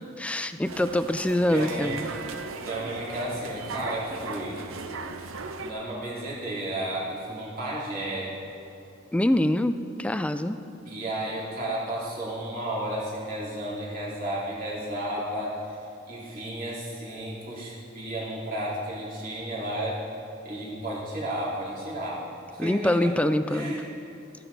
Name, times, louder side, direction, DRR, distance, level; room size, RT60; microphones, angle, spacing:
voice 1, 0.2-2.1 9.1-10.6 22.6-23.7, left 1 dB, 5° left, 11 dB, 0.3 m, -25 dB
sound 1, 0.7-5.7, right 4 dB, 80° right, 0.7 m, -37 dB
voice 2, 1.5-1.9 2.6-4.6 5.6-8.3 10.8-20.0 20.4-22.2 22.5-23.1 23.5-23.9, right 1 dB, 45° right, -7 dB, 3.2 m, -33 dB
14.0 x 10.0 x 4.0 m, 2.7 s
head